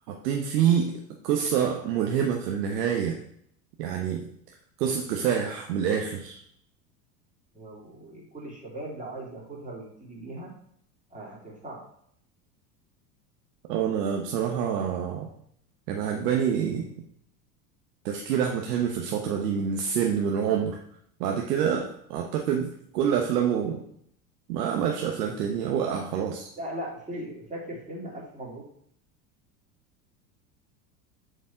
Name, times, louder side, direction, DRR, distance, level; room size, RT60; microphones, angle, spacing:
voice 1, 0.1-0.9 1.2-3.2 3.8-4.3 4.8-6.4 13.7-15.3 15.9-16.9 18.0-20.8 21.2-23.8 24.5-26.5, right 8 dB, 75° right, 2 dB, 1.1 m, -27 dB
voice 2, 7.5-10.5 11.1-11.8 26.6-28.7, right 1 dB, 15° right, -4 dB, 3.6 m, -39 dB
7.3 x 5.3 x 4.5 m, 0.68 s
hypercardioid pair, 95°, 47 cm